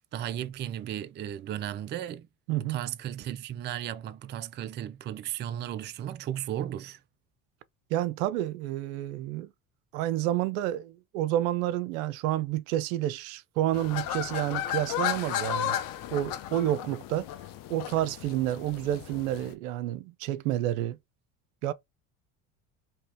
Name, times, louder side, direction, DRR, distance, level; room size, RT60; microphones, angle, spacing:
voice 1, 0.0-2.3 2.5-7.0, right 11 dB, 30° right, 0.3 m, -35 dB
voice 2, 2.5-2.8 7.9-9.5 9.9-15.8 16.1-17.2 17.7-21.0 21.6-21.7, right 13 dB, 80° right, 0.5 m, -29 dB
sound 1, 13.7-19.5, left 11 dB, 55° left, 0.7 m, -34 dB
2.8 x 2.8 x 3.4 m
supercardioid pair, 85°, 40 cm